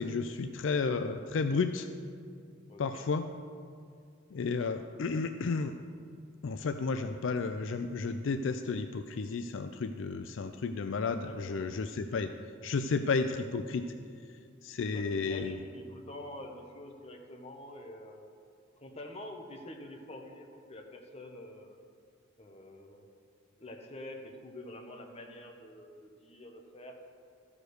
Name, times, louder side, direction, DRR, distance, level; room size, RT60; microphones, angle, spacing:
voice 1, 0.0-1.9 2.8-3.3 4.3-5.7 6.4-12.3 12.6-13.9 14.6-15.6, left 4 dB, 70° left, 8 dB, 0.4 m, -32 dB
voice 2, 2.7-3.1 11.2-11.7 14.8-18.3 18.8-21.8 22.4-23.1 23.6-27.0, left 1 dB, 30° left, 2 dB, 1.1 m, -47 dB
14.0 x 4.9 x 6.5 m, 2.2 s
head